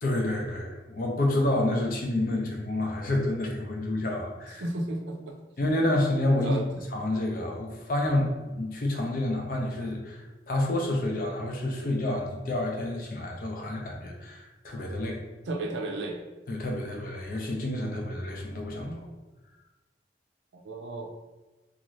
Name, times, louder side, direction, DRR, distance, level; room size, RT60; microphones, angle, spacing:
voice 1, 0.0-4.6 5.6-6.6 6.9-15.2 16.5-19.1, left 1 dB, 50° left, 0 dB, 0.5 m, -29 dB
voice 2, 4.5-5.4 6.4-6.6 15.5-16.2 18.9-19.0 20.6-21.1, right 2 dB, 85° right, 1 dB, 0.5 m, -33 dB
2.6 x 2.4 x 3.1 m, 1.1 s
head